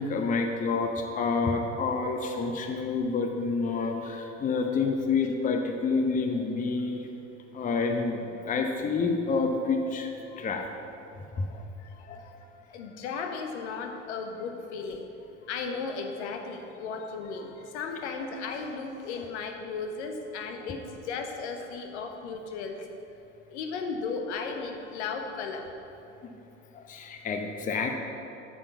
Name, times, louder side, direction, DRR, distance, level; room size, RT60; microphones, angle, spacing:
voice 1, 0.0-7.0 7.5-10.1 10.4-10.6 11.4-11.6 12.1-12.2 26.7-28.0, left 4 dB, 20° left, 4 dB, 0.8 m, -28 dB
voice 2, 11.8-12.4 12.7-15.0 15.4-22.9 23.5-25.7 27.8-27.9, left 4 dB, 60° left, 4 dB, 1.1 m, -35 dB
8.6 x 7.2 x 5.8 m, 2.9 s
figure-of-eight pair, 75°, 38 cm